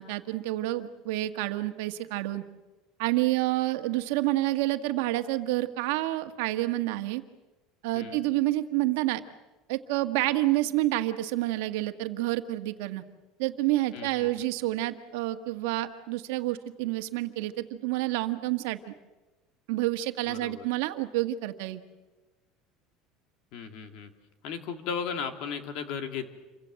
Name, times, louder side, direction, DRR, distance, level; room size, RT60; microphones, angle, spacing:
voice 1, 0.0-2.4 3.0-7.2 7.8-9.2 9.7-13.0 13.4-18.8 19.7-21.8, right 17 dB, 75° right, 8 dB, 1.7 m, -28 dB
voice 2, 7.9-8.2 13.9-14.3 20.3-20.6 23.5-24.1 24.4-26.3, left 6 dB, 50° left, 7 dB, 2.7 m, -35 dB
28.5 x 24.5 x 7.7 m, 1.2 s
cardioid pair, 175°, 0 cm